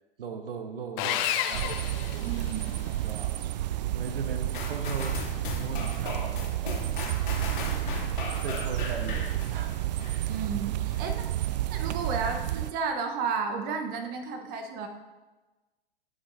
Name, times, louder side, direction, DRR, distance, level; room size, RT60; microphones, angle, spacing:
voice 1, 0.2-3.4 3.9-5.2 5.6-6.9 7.6-10.1, right 4 dB, 70° right, 7 dB, 1.0 m, -39 dB
Sawing, 1.0-2.9, left 10 dB, 35° left, 0.7 m, -31 dB
sound 1, 1.5-12.7, right 14 dB, 45° right, 0.4 m, -31 dB
voice 2, 2.2-2.7 10.3-11.2 11.7-14.9, right 5 dB, 30° right, 6 dB, 1.0 m, -32 dB
sound 2, 4.5-10.4 10.9-11.0, left 4 dB, 55° left, 2.5 m, -37 dB
18.5 x 6.3 x 2.6 m, 1.2 s
figure-of-eight pair, 105°, 30 cm